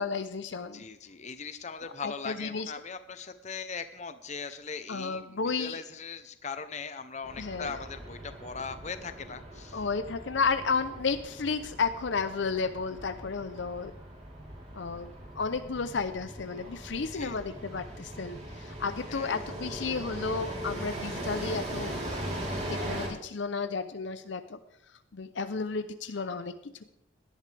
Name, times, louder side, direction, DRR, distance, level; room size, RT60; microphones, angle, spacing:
voice 1, 0.0-0.9 1.8-2.7 4.9-5.8 7.4-7.8 9.7-13.9 14.7-24.6 25.1-26.9, left 4 dB, 60° left, 11 dB, 0.6 m, -33 dB
voice 2, 0.7-9.8 17.0-17.4 19.1-19.3, left 5 dB, 35° left, 10 dB, 0.8 m, -40 dB
sound 1, 7.2-23.1, right 1 dB, 30° right, 3.6 m, -40 dB
17.5 x 11.5 x 3.4 m, 0.79 s
head